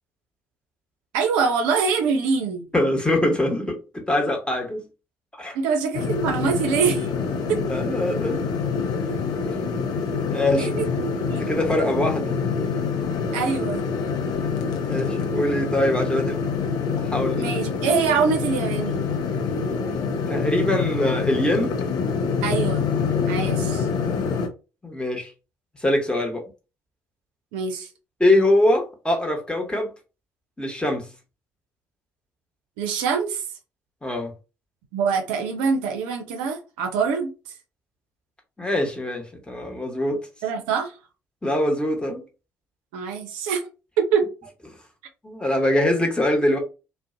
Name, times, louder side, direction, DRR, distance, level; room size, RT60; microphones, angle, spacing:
voice 1, 1.1-2.6 5.5-7.1 7.5-7.6 10.5-10.9 11.3-11.4 13.3-13.9 17.4-19.1 22.4-22.9 23.3-23.9 27.5-27.9 32.8-33.4 34.9-37.3 40.4-40.9 42.9-43.7 44.0-44.3, right 6 dB, 75° right, 0.5 m, -24 dB
voice 2, 2.7-4.8 5.3-5.6 7.5-8.4 10.3-10.7 11.4-12.3 14.8-16.4 17.0-17.5 20.3-21.7 24.8-25.3 25.8-26.4 28.2-29.9 30.6-31.1 34.0-34.3 38.6-40.2 41.4-42.2 45.2-46.6, left 1 dB, 10° left, 1.0 m, -23 dB
sound 1, 5.9-24.5, left 5 dB, 60° left, 0.5 m, -26 dB
2.5 x 2.1 x 2.5 m
hypercardioid pair, 45°, 8 cm